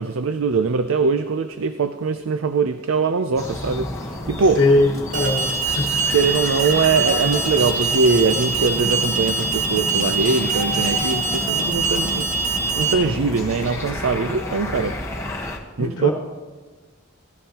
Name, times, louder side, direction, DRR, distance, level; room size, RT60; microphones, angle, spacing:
voice 1, 0.0-3.9 4.3-4.6 6.1-12.3 12.8-15.0 15.8-16.1, right 4 dB, 85° right, 10 dB, 0.5 m, -21 dB
sound 1, 3.4-15.6, left 1 dB, 15° left, 1.2 m, -30 dB
voice 2, 4.6-6.2 15.8-16.1, left 2 dB, 60° left, 0 dB, 1.3 m, -20 dB
Alarm, 5.1-12.9, right 4 dB, 40° right, 1.3 m, -24 dB
16.5 x 11.5 x 2.9 m, 1.3 s
head